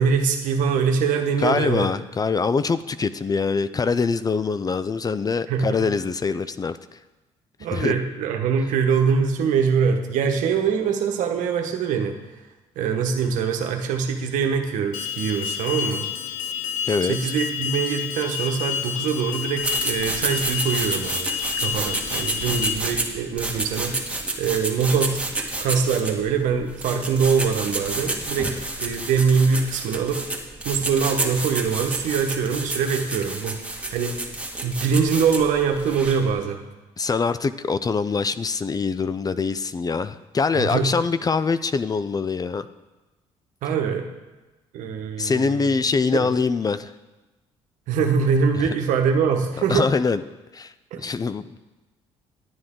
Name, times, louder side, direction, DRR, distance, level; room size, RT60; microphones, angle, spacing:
voice 1, 0.0-1.9 5.5-5.8 7.6-12.1 12.8-16.0 17.1-21.3 21.6-25.2 25.6-30.2 30.6-33.6 33.9-34.2 34.6-36.6 40.6-40.9 43.6-44.0 44.7-45.7 46.1-46.3 47.9-49.8 50.9-51.0, right 6 dB, 75° right, 4 dB, 1.1 m, -23 dB
voice 2, 1.4-6.8 7.7-7.9 16.8-17.3 37.0-42.7 45.2-46.9 49.7-50.2 50.5-50.7 51.0-51.6, left 4 dB, 30° left, 13 dB, 0.5 m, -24 dB
Alarm, 14.9-22.7, left 8 dB, 85° left, 0.6 m, -29 dB
sound 1, 19.6-36.3, right 2 dB, 10° right, 1.8 m, -30 dB
10.5 x 9.7 x 3.8 m, 1.1 s
supercardioid pair, 65°, 13 cm